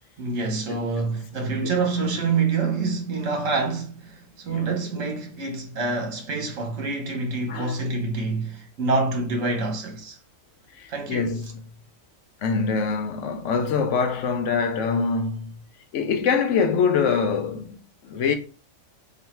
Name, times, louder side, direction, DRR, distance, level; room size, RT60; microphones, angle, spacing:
voice 1, 0.2-10.2 10.9-11.3, right 3 dB, 75° right, 1.4 m, -26 dB
voice 2, 10.7-11.6 12.4-15.6 15.9-17.8 18.0-18.4, left 5 dB, 70° left, 0.9 m, -24 dB
3.3 x 2.3 x 4.3 m
omnidirectional pair, 1.4 m